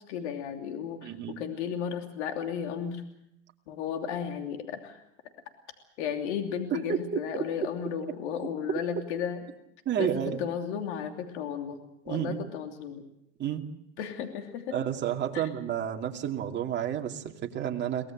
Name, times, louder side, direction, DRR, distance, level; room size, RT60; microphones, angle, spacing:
voice 1, 0.1-3.0 3.7-5.0 6.0-9.4 10.0-11.8 12.0-13.0 14.0-14.7 15.3-15.4, left 8 dB, 70° left, 4 dB, 3.1 m, -34 dB
voice 2, 1.0-1.4 6.7-7.0 7.3-7.7 9.8-10.4 12.1-12.4 13.4-13.6 14.7-18.1, right 9 dB, 30° right, 2 dB, 2.6 m, -31 dB
23.5 x 18.5 x 7.8 m, 0.80 s
supercardioid pair, 125°, 36 cm